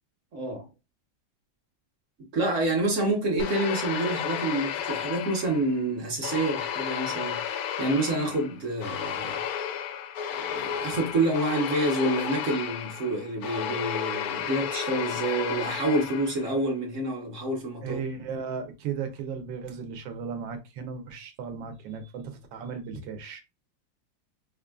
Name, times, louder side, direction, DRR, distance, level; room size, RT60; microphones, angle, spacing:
voice 1, 0.3-0.7 2.3-9.5 10.3-18.0, right 2 dB, 50° right, 1.2 m, -28 dB
sound 1, 3.4-5.8 6.2-16.5, left 8 dB, 75° left, 0.8 m, -33 dB
voice 2, 17.8-23.4, right 6 dB, 80° right, 1.5 m, -36 dB
5.1 x 2.4 x 2.3 m
omnidirectional pair, 2.1 m